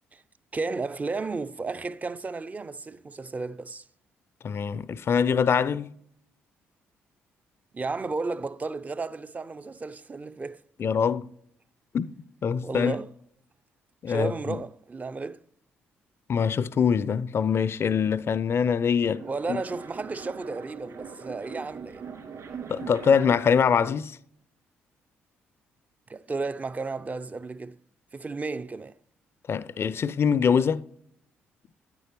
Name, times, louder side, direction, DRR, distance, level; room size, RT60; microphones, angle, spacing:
voice 1, 0.5-3.8 7.7-10.6 12.6-13.1 14.1-15.4 19.2-22.0 26.1-27.8 28.1-28.9, right 3 dB, 25° right, 0.4 m, -33 dB
voice 2, 4.4-5.9 10.8-11.3 11.9-12.1 12.4-13.0 14.0-14.6 16.3-19.2 19.5-19.6 22.7-24.2 29.5-30.8, left 6 dB, 45° left, 0.4 m, -24 dB
sound 1, 18.9-23.6, right 6 dB, 55° right, 2.5 m, -41 dB
9.6 x 9.2 x 3.0 m
hypercardioid pair, 45°, 6 cm